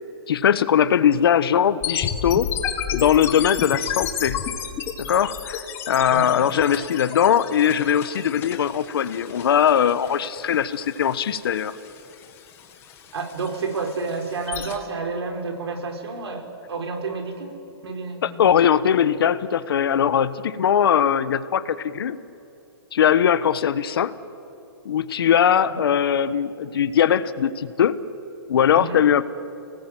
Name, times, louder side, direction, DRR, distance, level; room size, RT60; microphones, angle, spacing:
voice 1, 0.3-2.5 2.9-4.4 5.0-11.7 18.2-22.2 22.9-24.1 24.8-27.9 28.5-29.2, left 9 dB, 65° left, 13 dB, 1.3 m, -20 dB
sound 1, 1.8-14.8, left 9 dB, 20° left, 1.7 m, -32 dB
voice 2, 13.1-18.4 25.7-25.8 28.7-29.0, right 4 dB, 75° right, 4 dB, 4.8 m, -30 dB
29.5 x 19.0 x 9.1 m, 2.9 s
hypercardioid pair, 165°, 13 cm